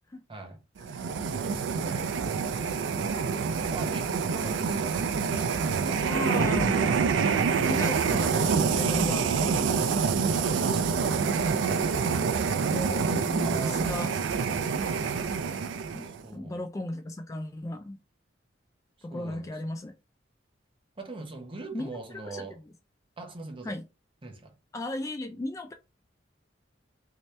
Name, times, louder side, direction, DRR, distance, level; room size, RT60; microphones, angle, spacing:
voice 1, 0.3-0.6 1.1-2.7 3.3-4.9 5.3-6.0 10.4-12.5 13.4-14.0 16.0-16.7 19.1-19.6 21.0-22.6 23.2-23.8 24.2-24.6, right 3 dB, 30° right, 0.8 m, -42 dB
sound 1, 0.8-16.2, right 5 dB, 85° right, 0.4 m, -27 dB
voice 2, 6.1-6.8 7.6-10.1 12.7-14.1 15.9-16.0 16.3-18.0 19.0-19.9 21.7-22.0 22.3-22.5 23.6-23.8 24.7-25.7, left 1 dB, 20° left, 0.3 m, -35 dB
3.2 x 2.8 x 3.2 m
head